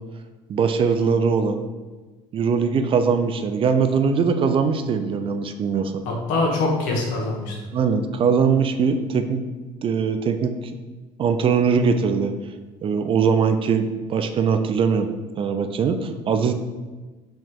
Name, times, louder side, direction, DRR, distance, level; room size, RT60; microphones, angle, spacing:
voice 1, 0.5-1.6 2.3-6.0 7.7-9.4 9.8-10.5 11.2-12.3 12.8-15.1 15.4-16.5, right 6 dB, 40° right, 8 dB, 0.4 m, -21 dB
voice 2, 6.0-7.5, left 2 dB, 80° left, -1 dB, 1.0 m, -23 dB
3.2 x 2.8 x 4.4 m, 1.3 s
supercardioid pair, 95°, 14 cm